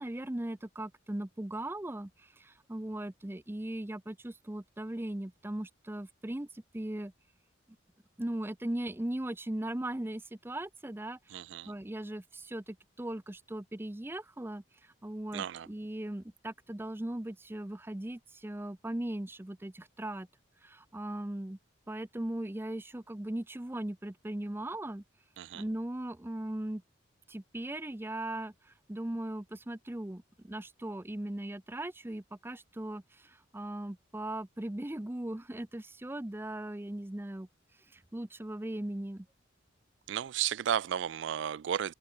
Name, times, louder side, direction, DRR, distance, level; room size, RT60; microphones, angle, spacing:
voice 1, 0.0-7.1 8.2-11.4 11.6-20.3 20.6-21.6 21.9-25.0 25.5-26.8 27.3-37.5 37.9-39.3, right 1 dB, 10° right, 0.5 m, -38 dB
voice 2, 11.3-11.7 15.3-15.7 25.4-25.6 40.1-41.9, right 9 dB, 65° right, 0.3 m, -33 dB
open air
head